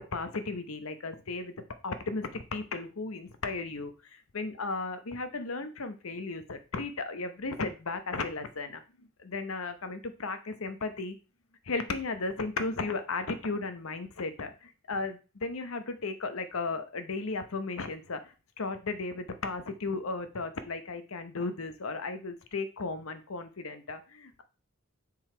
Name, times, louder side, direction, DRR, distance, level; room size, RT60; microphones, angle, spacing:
voice 1, 0.1-1.5 1.8-3.9 4.3-11.2 11.6-24.4, left 3 dB, 75° left, 9 dB, 0.8 m, -35 dB
7.5 x 4.0 x 4.4 m, 0.33 s
head